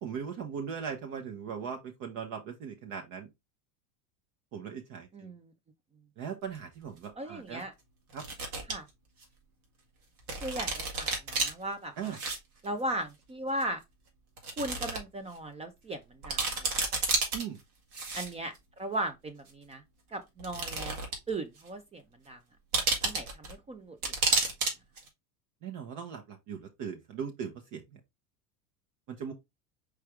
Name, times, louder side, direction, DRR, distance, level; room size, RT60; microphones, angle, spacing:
voice 1, 0.0-3.3 4.5-5.3 6.2-7.6 8.1-8.2 12.0-12.2 17.3-17.6 25.6-28.0 29.1-29.3, right 7 dB, 45° right, 0.9 m, -39 dB
voice 2, 5.1-5.5 7.2-7.7 8.7-8.9 10.4-12.2 12.6-13.8 14.6-16.7 18.2-19.8 20.1-22.4 23.0-24.4, right 1 dB, 15° right, 0.4 m, -37 dB
sound 1, 6.6-6.7 8.1-8.7 9.2-9.3 10.3-11.5 12.0-12.4 12.6-12.7 13.6-13.7 14.4-15.0 15.4-15.5 15.9-16.0 16.2-17.4 17.9-18.6 19.5-19.6 20.4-21.3 21.6-21.7 22.7-23.5 24.0-24.7 25.0-25.1, right 3 dB, 90° right, 2.0 m, -30 dB
4.8 x 3.3 x 3.1 m
supercardioid pair, 110°, 43 cm